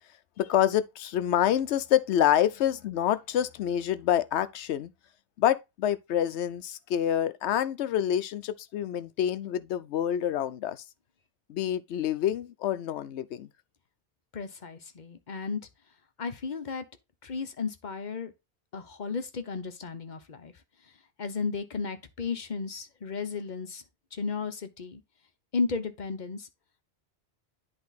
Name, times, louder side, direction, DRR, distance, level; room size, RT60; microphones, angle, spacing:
voice 1, 0.4-4.9 5.4-10.8 11.5-13.5, left 10 dB, 80° left, 0.9 m, -27 dB
voice 2, 14.3-15.6 16.2-16.8 17.2-18.3 18.7-20.5 21.2-23.8 24.1-25.0 25.5-26.5, left 4 dB, 45° left, 0.9 m, -34 dB
10.5 x 3.5 x 4.0 m
omnidirectional pair, 1.1 m